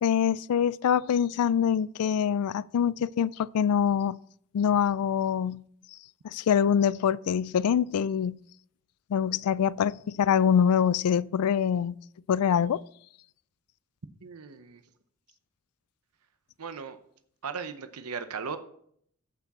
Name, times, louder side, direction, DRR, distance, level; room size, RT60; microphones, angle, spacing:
voice 1, 0.0-4.2 4.5-5.6 6.3-8.4 9.1-12.0 12.3-12.8, left 8 dB, 90° left, 0.3 m, -24 dB
voice 2, 14.2-14.8 16.6-17.0 17.4-18.6, right 5 dB, 90° right, 0.8 m, -37 dB
14.5 x 6.0 x 4.2 m
head